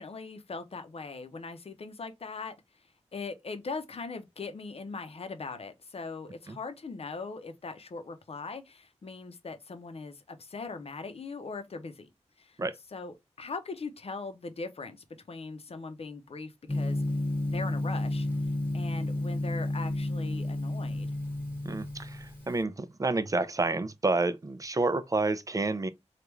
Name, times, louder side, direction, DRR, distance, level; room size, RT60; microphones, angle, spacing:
voice 1, 0.0-2.6 3.1-12.1 12.4-12.6 12.9-17.0 17.4-18.3 18.7-21.1, left 4 dB, 55° left, 0.7 m, -40 dB
Gong, 16.7-22.6, left 1 dB, 15° left, 1.2 m, -31 dB
voice 2, 21.6-25.9, right 3 dB, 30° right, 0.5 m, -29 dB
3.4 x 2.4 x 3.0 m
wide cardioid pair, 65°, 12 cm